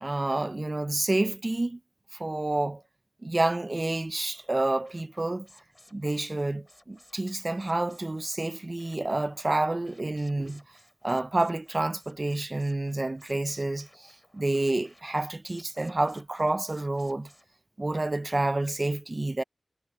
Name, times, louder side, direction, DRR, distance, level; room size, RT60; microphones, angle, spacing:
voice 1, 0.0-1.8 2.1-2.8 3.2-5.5 5.9-10.6 11.0-17.3 17.8-19.4, right 2 dB, 25° right, 0.4 m, -29 dB
sound 1, 4.1-17.5, left 1 dB, 10° left, 3.2 m, -59 dB
wide cardioid pair, 115°, 0 cm